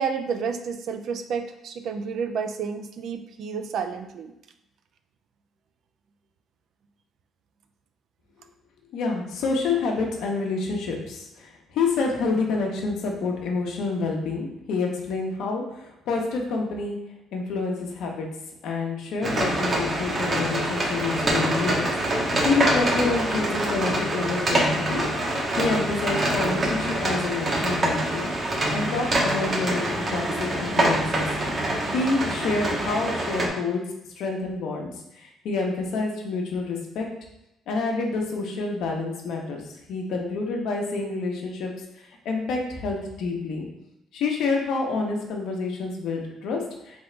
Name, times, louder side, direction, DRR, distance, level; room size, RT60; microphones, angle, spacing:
voice 1, 0.0-4.3, right 6 dB, 65° right, 7 dB, 0.4 m, -30 dB
voice 2, 8.9-17.0 17.3-18.3 18.6-25.0 25.6-28.3 28.7-31.3 31.9-33.8 34.2-37.1 37.7-39.6 39.9-43.7 44.1-47.0, left 4 dB, 75° left, 1 dB, 0.9 m, -28 dB
sound 1, 19.2-33.5, right 1 dB, 30° right, 0.8 m, -25 dB
3.8 x 3.5 x 3.3 m, 0.85 s
cardioid pair, 125°, 0 cm